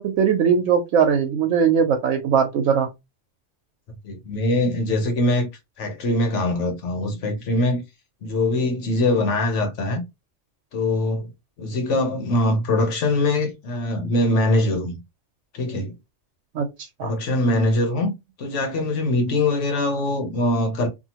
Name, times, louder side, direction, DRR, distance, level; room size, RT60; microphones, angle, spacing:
voice 1, 0.0-2.9 16.5-16.7 17.0-17.1, right 7 dB, 85° right, 1.0 m, -20 dB
voice 2, 4.0-5.5 5.8-7.8 8.2-10.0 10.7-11.3 11.6-15.0 15.5-15.9 17.0-18.1 18.4-20.9, left 2 dB, 75° left, 1.2 m, -22 dB
2.8 x 2.4 x 2.8 m
omnidirectional pair, 1.2 m